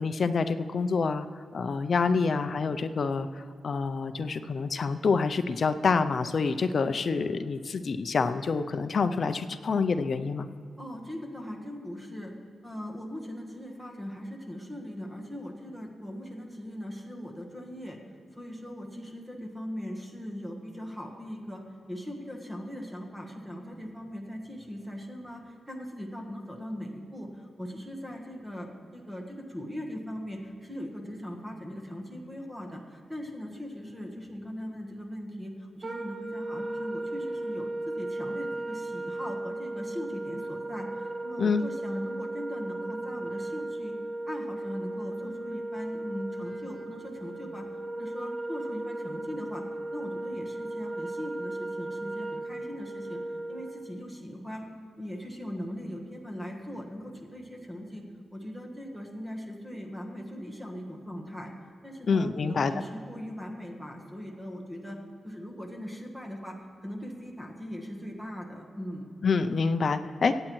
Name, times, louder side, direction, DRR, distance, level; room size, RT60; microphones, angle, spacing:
voice 1, 0.0-10.5 41.4-41.6 62.1-62.7 69.2-70.3, left 4 dB, 45° left, 10 dB, 0.4 m, -27 dB
voice 2, 10.8-12.3 12.6-18.0 18.3-21.6 21.9-44.0 44.3-47.7 47.9-49.6 49.9-53.2 53.5-54.7 55.0-58.0 58.3-61.5 61.8-65.0 65.2-69.1, equal, 10° right, 1 dB, 1.2 m, -40 dB
Wind instrument woodwind instrument, 35.8-53.9, right 2 dB, 35° right, 0.8 m, -36 dB
25.0 x 8.6 x 3.1 m, 2.4 s
wide cardioid pair, 175°, 0 cm